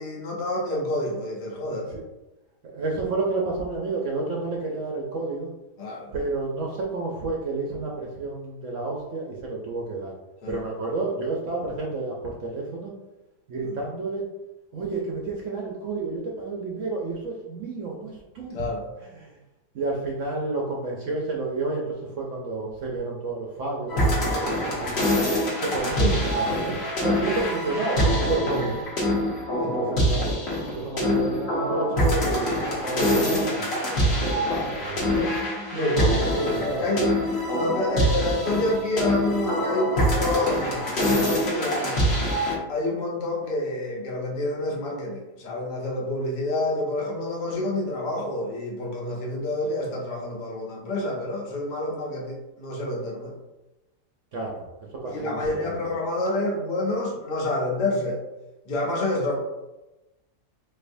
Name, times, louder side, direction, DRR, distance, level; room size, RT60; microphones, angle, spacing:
voice 1, 0.0-1.9 5.8-6.1 10.4-10.6 13.6-13.8 18.5-18.9 26.0-26.2 28.5-28.7 29.6-29.7 33.0-33.4 35.7-37.1 37.5-42.0 42.7-53.3 55.1-58.2 58.7-59.3, left 1 dB, 75° left, -1 dB, 1.4 m, -28 dB
voice 2, 2.6-5.5 6.1-10.1 10.5-12.9 13.5-14.3 14.7-18.6 19.2-19.3 19.7-25.1 25.6-28.9 29.6-30.4 30.7-33.6 34.2-35.3 35.7-36.0 36.3-36.9 54.3-54.6 55.0-55.7, right 3 dB, 65° right, -1 dB, 0.8 m, -30 dB
sound 1, 23.9-42.5, equal, 45° left, 1.0 m, -25 dB
4.3 x 2.7 x 2.6 m, 1.0 s
omnidirectional pair, 1.8 m